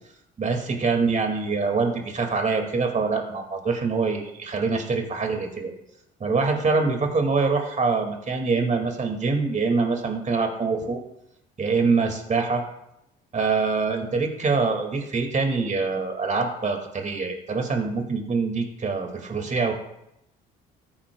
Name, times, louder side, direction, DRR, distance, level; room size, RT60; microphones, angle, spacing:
voice 1, 0.4-5.7 6.2-11.0 11.6-12.6 13.3-19.7, right 4 dB, 35° right, 3 dB, 2.3 m, -24 dB
14.0 x 8.8 x 2.4 m, 0.83 s
supercardioid pair, 65°, 21 cm